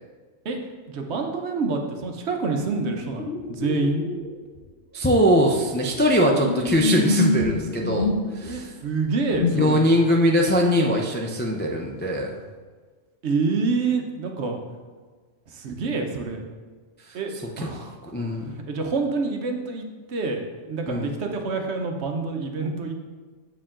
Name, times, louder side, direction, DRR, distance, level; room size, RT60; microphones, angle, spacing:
voice 1, 0.9-4.0 8.4-9.9 13.2-14.6 15.5-16.4 17.1-17.9 18.7-23.0, right 4 dB, 65° right, 3 dB, 1.0 m, -27 dB
sound 1, 2.8-4.3 4.6-4.7 5.1-8.5 9.1-9.8, left 3 dB, 55° left, 1.1 m, -27 dB
voice 2, 4.9-8.7 9.5-12.4 17.1-17.2 17.6-17.7 18.1-18.6 20.9-21.1, equal, 15° left, -1 dB, 0.3 m, -21 dB
7.3 x 4.8 x 3.7 m, 1.4 s
omnidirectional pair, 1.3 m